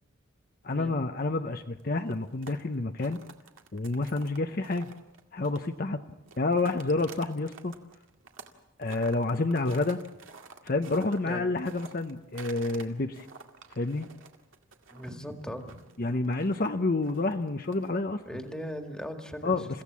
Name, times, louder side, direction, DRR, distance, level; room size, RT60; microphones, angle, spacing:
voice 1, 0.6-3.2 3.7-4.9 5.3-6.0 6.4-7.7 8.8-10.0 10.6-13.3 13.7-14.1 16.0-18.2 19.4-19.8, left 2 dB, 45° left, 6 dB, 0.7 m, -29 dB
sound 1, 1.8-5.9 6.2-8.6 8.8-12.9 13.1-18.0, right 4 dB, 70° right, 2.1 m, -49 dB
voice 2, 14.9-15.8 18.3-19.6, equal, 5° left, 4 dB, 1.9 m, -38 dB
29.5 x 16.0 x 7.4 m, 0.96 s
head